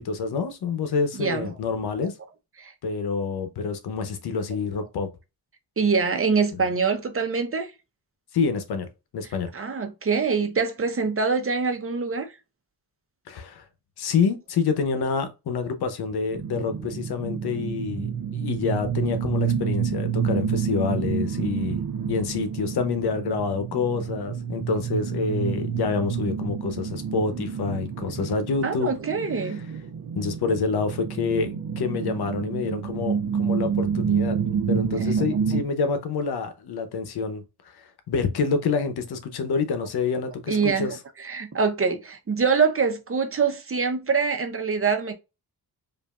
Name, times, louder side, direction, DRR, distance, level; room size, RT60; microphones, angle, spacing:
voice 1, 0.0-2.1 2.8-5.1 6.5-6.6 8.3-8.9 9.1-9.5 13.3-13.6 14.0-18.1 18.3-21.8 22.1-28.9 29.4-29.5 30.2-34.4 34.7-37.4 37.8-41.0, left 5 dB, 90° left, 0.8 m, -27 dB
voice 2, 1.2-1.5 2.6-2.7 5.8-7.7 9.5-12.3 28.6-29.6 40.5-40.9 41.2-45.1, right 5 dB, 35° right, 0.8 m, -24 dB
sound 1, 16.3-35.6, right 7 dB, 70° right, 0.6 m, -28 dB
5.1 x 2.6 x 2.4 m
cardioid pair, 90°, 38 cm